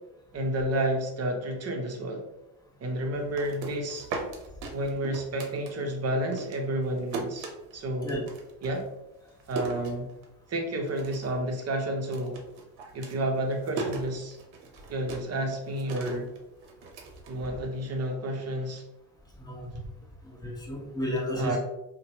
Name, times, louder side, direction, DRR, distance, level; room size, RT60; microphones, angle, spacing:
voice 1, 0.3-2.3 2.8-4.1 4.7-7.5 7.7-8.3 8.6-8.8 9.5-10.1 10.5-12.4 12.9-14.4 14.9-16.3 17.3-18.8 21.3-21.6, right 1 dB, 30° right, 3 dB, 0.7 m, -30 dB
sound 1, 3.1-6.1 6.4-10.5 10.8-11.4 11.7-18.0, right 4 dB, 65° right, 0.8 m, -39 dB
voice 2, 19.4-19.8 20.2-21.6, equal, 10° left, -5 dB, 1.1 m, -32 dB
2.8 x 2.1 x 2.8 m, 0.90 s
supercardioid pair, 80°, 49 cm